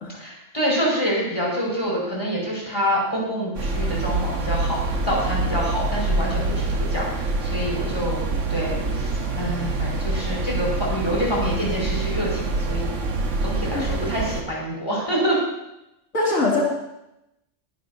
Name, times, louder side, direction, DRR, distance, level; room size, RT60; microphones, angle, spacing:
voice 1, 0.2-8.2 8.5-13.0 13.4-15.4, equal, 20° left, -4 dB, 5.5 m, -26 dB
sound 1, 3.5-14.4, right 2 dB, 65° right, 1.5 m, -26 dB
voice 2, 16.1-16.6, left 3 dB, 80° left, -4 dB, 2.9 m, -22 dB
21.5 x 11.0 x 2.8 m, 0.88 s
omnidirectional pair, 1.4 m